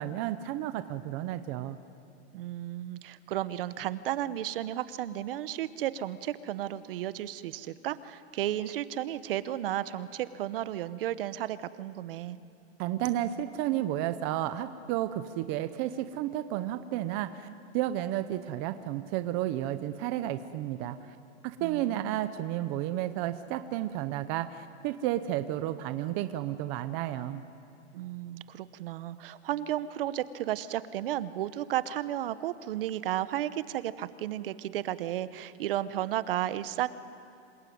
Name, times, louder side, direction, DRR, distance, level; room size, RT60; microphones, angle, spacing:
voice 1, 0.0-1.8 12.8-17.5 17.7-21.0 21.4-27.4, right 13 dB, 25° right, 11 dB, 0.7 m, -32 dB
voice 2, 2.3-12.4 21.6-22.2 27.9-36.9, right 12 dB, 50° right, 14 dB, 1.1 m, -33 dB
27.5 x 21.5 x 9.4 m, 2.5 s
supercardioid pair, 165°, 35 cm